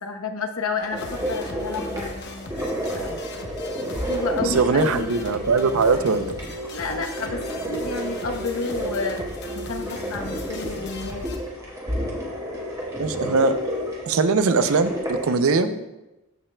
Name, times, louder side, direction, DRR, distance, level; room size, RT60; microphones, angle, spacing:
voice 1, 0.0-2.1 2.9-3.1 4.1-5.2 6.7-9.3 9.5-11.3 15.6-15.8, left 3 dB, 70° left, 5 dB, 0.9 m, -30 dB
sound 1, 0.8-15.3, right 1 dB, 15° right, 1.5 m, -32 dB
sound 2, 0.9-3.3 4.5-13.9, left 2 dB, 85° right, 2.3 m, -39 dB
sound 3, 1.0-11.4, left 2 dB, 50° left, 0.8 m, -39 dB
voice 2, 4.4-6.4 13.0-13.5 14.1-15.7, right 4 dB, 70° right, 11 dB, 0.5 m, -21 dB
13.5 x 5.5 x 2.2 m, 0.97 s
head